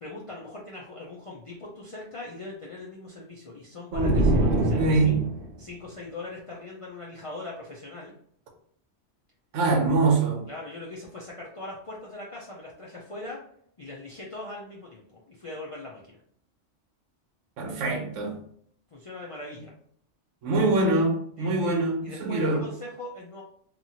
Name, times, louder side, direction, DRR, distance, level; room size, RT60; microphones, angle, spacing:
voice 1, 0.0-4.8 5.0-5.2 5.6-8.1 10.5-13.4 13.8-16.2 18.9-19.7 21.4-21.7 22.0-23.4, left 2 dB, 60° left, -4 dB, 0.3 m, -41 dB
sound 1, 3.9-5.6, right 1 dB, 70° right, 0.8 m, -24 dB
voice 2, 3.9-5.3 9.5-10.4 17.6-18.4 20.4-22.6, right 3 dB, 90° right, 3 dB, 1.0 m, -24 dB
2.9 x 2.4 x 2.7 m, 0.64 s
omnidirectional pair, 1.3 m